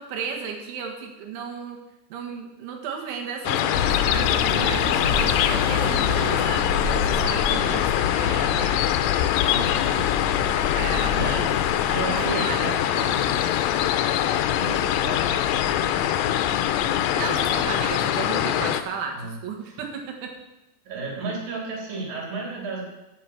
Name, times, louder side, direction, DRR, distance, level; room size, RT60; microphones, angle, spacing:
voice 1, 0.0-1.8 2.1-8.8 10.7-11.5 12.1-13.3 17.1-20.3, right 6 dB, 90° right, 2 dB, 4.1 m, -34 dB
sound 1, 3.5-18.8, left 11 dB, 80° left, 2.7 m, -23 dB
sound 2, 3.7-17.9, left 5 dB, 40° left, 5.2 m, -31 dB
voice 2, 9.5-10.1 11.1-11.4 11.9-12.8 13.3-13.4 14.5-15.5 15.8-15.9 19.1-19.3 19.6-19.8 20.8-22.8, right 3 dB, 55° right, -2 dB, 4.4 m, -33 dB
16.0 x 7.6 x 6.1 m, 0.96 s
omnidirectional pair, 5.3 m